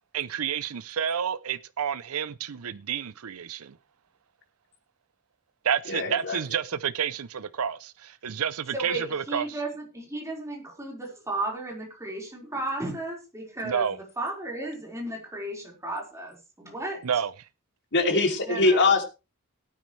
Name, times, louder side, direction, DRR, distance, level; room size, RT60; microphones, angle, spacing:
voice 1, 0.1-3.8 5.6-9.4 13.6-14.0 17.0-17.3, right 8 dB, 70° right, 0.6 m, -29 dB
voice 2, 5.9-6.4 17.9-19.0, left 3 dB, 55° left, 3.0 m, -22 dB
voice 3, 8.7-17.0 18.4-18.9, right 2 dB, 15° right, 4.7 m, -34 dB
18.0 x 9.4 x 3.3 m
head